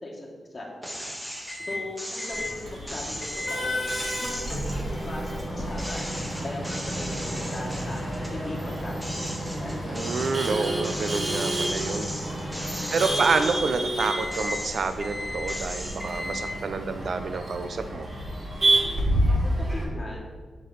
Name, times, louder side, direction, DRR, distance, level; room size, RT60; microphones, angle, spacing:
voice 1, 0.0-0.7 1.6-3.8 4.2-6.1 6.4-8.1 8.3-9.8 12.8-13.3 19.4-20.3, left 2 dB, 35° left, -4 dB, 1.5 m, -39 dB
sound 1, 0.8-1.6 2.0-5.4 5.8-8.4 8.8-13.8 14.2-15.0 15.5-16.0, equal, 10° right, 1.3 m, -37 dB
Microwave oven, 1.5-1.9 2.2-2.5 3.2-3.6 4.0-13.6 14.0-14.6 15.0-15.6 16.0-16.6, equal, 20° left, 1.8 m, -35 dB
Male speech man speaking / Laughter / Chatter, 2.3-19.8, right 1 dB, 40° right, 2.1 m, -30 dB
voice 2, 9.8-12.1 12.9-18.1, right 4 dB, 65° right, 9 dB, 0.5 m, -28 dB
6.6 x 5.5 x 3.9 m, 1.4 s
cardioid pair, 85°, 0 cm